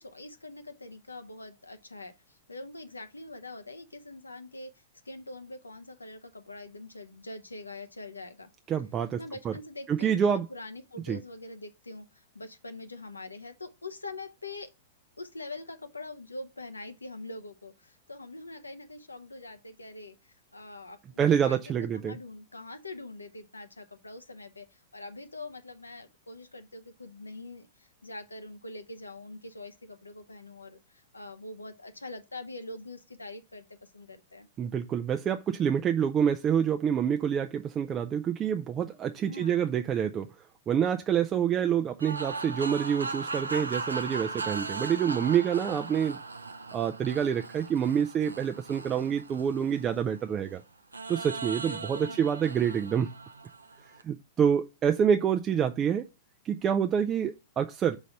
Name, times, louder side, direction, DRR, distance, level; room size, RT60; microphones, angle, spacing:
voice 1, 0.0-4.7 5.1-8.5 9.1-14.7 15.2-34.5 39.2-39.8 45.6-46.1 51.6-52.2, left 2 dB, 80° left, 0.7 m, -44 dB
voice 2, 8.7-9.2 9.4-9.5 9.9-10.5 11.0-11.2 21.2-22.2 34.6-40.3 40.7-46.2 46.7-50.6 51.1-53.1 54.0-56.1 56.4-58.0, right 8 dB, 25° right, 0.4 m, -27 dB
sound 1, 42.0-50.3 50.9-54.0, right 3 dB, 80° right, 0.5 m, -38 dB
5.2 x 4.0 x 5.6 m
figure-of-eight pair, 105°, 0 cm